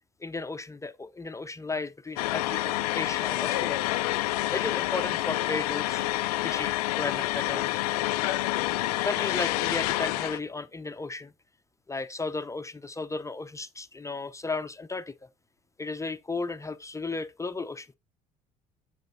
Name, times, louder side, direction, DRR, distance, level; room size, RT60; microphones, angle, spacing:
voice 1, 0.2-3.8 4.5-6.0 6.4-7.8 8.7-11.3 11.9-15.1 15.8-18.0, left 3 dB, 15° left, 0.5 m, -34 dB
sound 1, 2.2-10.4, left 17 dB, 80° left, 0.4 m, -28 dB
7.7 x 7.4 x 2.5 m
hypercardioid pair, 65°, 19 cm